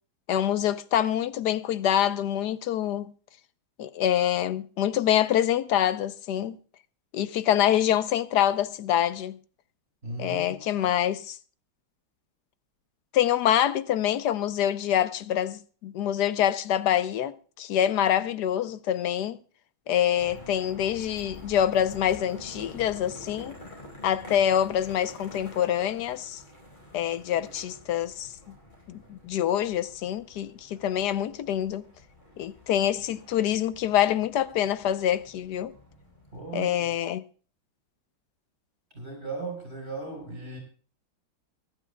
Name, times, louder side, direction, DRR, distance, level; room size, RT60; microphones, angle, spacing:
voice 1, 0.3-3.1 3.8-6.6 7.1-9.4 10.2-11.4 13.1-19.4 19.9-23.5 24.0-26.4 26.9-28.3 28.9-31.9 32.4-35.7 36.5-37.2, left 10 dB, 65° left, 1.1 m, -26 dB
voice 2, 10.0-10.6 36.3-37.0 38.9-40.6, right 3 dB, 30° right, 5.1 m, -37 dB
sound 1, 20.2-36.5, left 1 dB, 20° left, 4.8 m, -48 dB
25.0 x 11.5 x 2.2 m
omnidirectional pair, 2.2 m